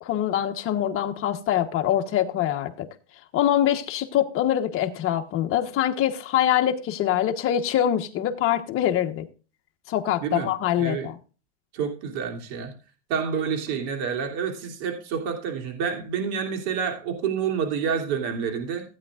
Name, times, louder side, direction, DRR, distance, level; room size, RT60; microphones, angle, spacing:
voice 1, 0.0-2.9 3.3-9.2 9.9-11.2, left 11 dB, 35° left, 1.2 m, -24 dB
voice 2, 11.7-12.7 13.1-18.8, right 7 dB, 60° right, 3.1 m, -28 dB
16.0 x 9.2 x 2.5 m
supercardioid pair, 135°, 36 cm